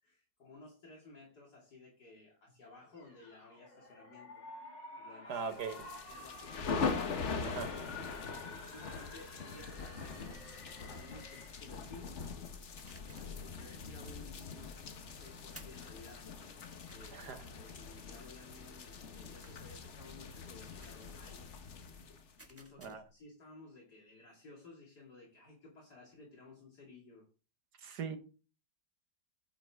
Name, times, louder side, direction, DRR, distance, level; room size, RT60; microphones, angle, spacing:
voice 1, 0.0-4.4 5.0-5.4 6.0-7.0 8.6-10.5 10.8-12.2 13.2-14.8 15.1-16.3 16.9-21.5 22.5-27.3, left 3 dB, 65° left, 2.8 m, -56 dB
sound 1, 2.9-11.8, left 2 dB, 80° left, 3.1 m, -51 dB
voice 2, 5.3-5.9 7.5-7.7 17.1-17.5 22.8-23.0 27.8-28.2, right 6 dB, 65° right, 1.7 m, -40 dB
sound 2, 5.5-22.5, left 5 dB, 45° left, 1.3 m, -42 dB
sound 3, 12.8-13.4 15.5-15.9 16.9-17.0 19.4-19.8 20.8-21.1 22.4-23.2, right 1 dB, 10° right, 1.2 m, -57 dB
9.5 x 8.8 x 3.5 m
omnidirectional pair, 1.9 m